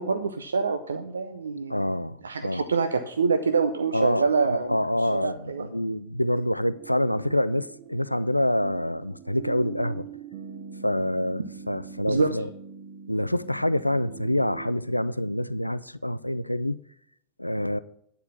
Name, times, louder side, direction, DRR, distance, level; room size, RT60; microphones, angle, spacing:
voice 1, 0.0-1.9 2.2-4.8 5.1-5.7 12.1-12.3, right 4 dB, 70° right, 0.6 m, -26 dB
voice 2, 1.7-2.6 3.9-10.1 10.8-12.5 13.1-16.8 17.4-17.8, left 1 dB, 90° left, 0.3 m, -26 dB
sound 1, 6.7-14.7, right 7 dB, 50° right, 1.1 m, -43 dB
9.9 x 4.5 x 6.7 m
figure-of-eight pair, 90°, 0 cm